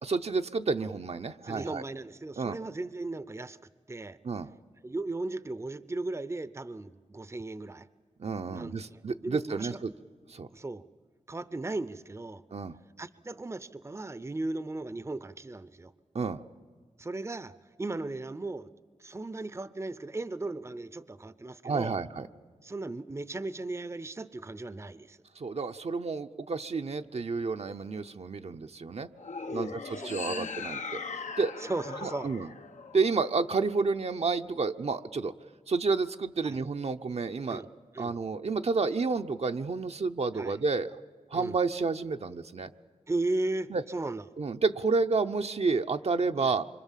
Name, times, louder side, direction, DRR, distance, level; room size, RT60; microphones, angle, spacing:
voice 1, 0.0-1.8 2.4-2.6 4.2-4.5 8.2-9.9 10.3-10.5 12.5-12.8 16.1-16.4 21.6-22.3 25.4-29.1 29.5-31.7 32.0-32.5 32.9-35.3 35.7-37.6 38.0-40.9 41.3-42.7 43.7-43.8 44.4-46.6, right 4 dB, 60° right, 0.7 m, -30 dB
voice 2, 1.4-3.6 3.9-4.2 4.8-7.9 8.5-9.8 10.5-10.8 11.3-12.4 13.0-15.9 17.0-18.7 19.0-22.0 22.6-25.2 29.5-30.5 31.6-32.3 36.4-36.6 37.5-37.7 37.9-38.2 40.3-40.5 41.3-41.6 43.1-44.2 46.4-46.5, right 2 dB, 25° right, 0.6 m, -36 dB
sound 1, 29.2-33.5, left 5 dB, 80° left, 1.0 m, -39 dB
25.5 x 24.5 x 7.4 m
cardioid pair, 55°, 12 cm